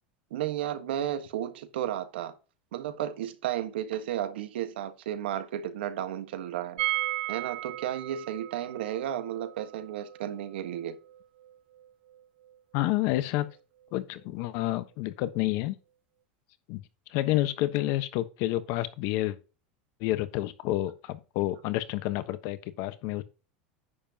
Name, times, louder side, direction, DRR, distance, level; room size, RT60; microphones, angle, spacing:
voice 1, 0.3-2.3 2.7-6.8 7.3-11.0, right 11 dB, 85° right, 1.4 m, -33 dB
sound 1, 6.8-12.6 12.8-12.9 13.2-13.3, right 18 dB, 70° right, 0.6 m, -36 dB
voice 2, 12.7-13.5 13.9-15.8 16.7-16.8 17.1-19.4 20.0-23.2, left 16 dB, 60° left, 1.1 m, -29 dB
10.0 x 7.1 x 2.9 m
supercardioid pair, 135°, 5 cm